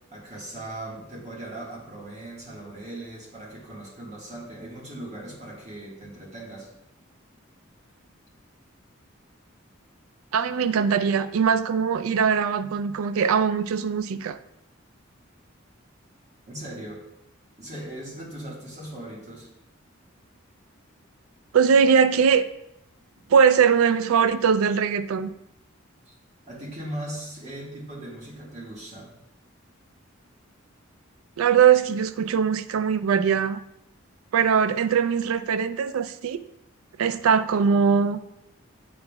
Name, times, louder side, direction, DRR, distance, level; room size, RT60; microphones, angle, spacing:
voice 1, 0.1-6.7 16.5-17.0 17.6-19.5 26.1-26.2 26.5-29.1, right 1 dB, 35° right, -3 dB, 1.5 m, -39 dB
voice 2, 10.3-14.4 21.5-22.4 23.3-25.3 31.4-33.6 34.3-36.4 37.0-38.2, right 6 dB, 85° right, 13 dB, 0.3 m, -21 dB
7.9 x 5.3 x 2.3 m, 0.83 s
head